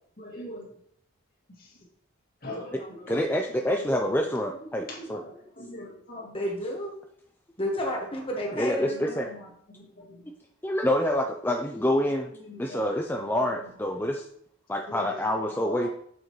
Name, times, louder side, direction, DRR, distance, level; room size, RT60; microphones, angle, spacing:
voice 1, 0.2-0.8 1.6-1.8 2.4-3.3 3.8-4.2 4.8-6.5 8.4-10.3 12.3-14.1 14.9-15.9, left 1 dB, 40° left, -2 dB, 2.2 m, -43 dB
voice 2, 3.1-5.2 8.5-9.3 10.6-12.3 12.6-14.3 14.7-15.9, left 1 dB, 10° left, 2 dB, 0.4 m, -27 dB
voice 3, 6.3-6.9 7.6-9.0, left 1 dB, 25° left, -1 dB, 1.3 m, -30 dB
7.9 x 7.6 x 3.1 m, 0.66 s
head